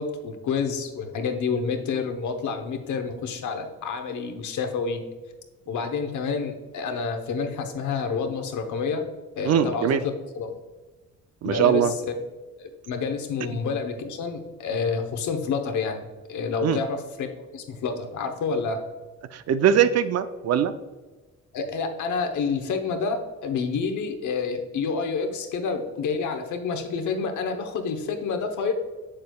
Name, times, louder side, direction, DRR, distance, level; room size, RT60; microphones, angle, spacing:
voice 1, 0.0-5.0 5.7-9.0 9.4-10.5 11.4-12.1 12.6-18.8 21.5-28.7, left 5 dB, 75° left, 5 dB, 1.0 m, -28 dB
voice 2, 9.4-10.0 11.4-11.9 13.5-13.6 16.6-16.8 19.3-20.7, right 9 dB, 55° right, 11 dB, 0.5 m, -21 dB
7.6 x 6.7 x 2.3 m, 1.2 s
cardioid pair, 90°, 30 cm